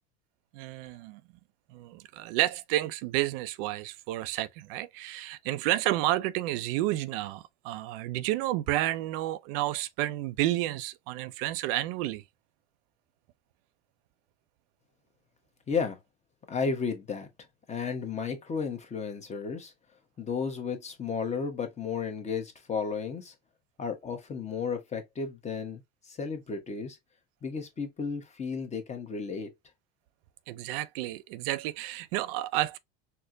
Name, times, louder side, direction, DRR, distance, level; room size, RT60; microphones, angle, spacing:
voice 1, 0.5-1.2 1.7-12.2 30.5-32.8, right 15 dB, 70° right, 0.4 m, -30 dB
voice 2, 15.7-16.0 16.5-17.3 17.7-19.7 20.2-23.3 23.8-25.8 26.1-27.0 27.4-29.5, left 5 dB, 25° left, 1.0 m, -33 dB
4.3 x 2.1 x 2.6 m
supercardioid pair, 110°, 29 cm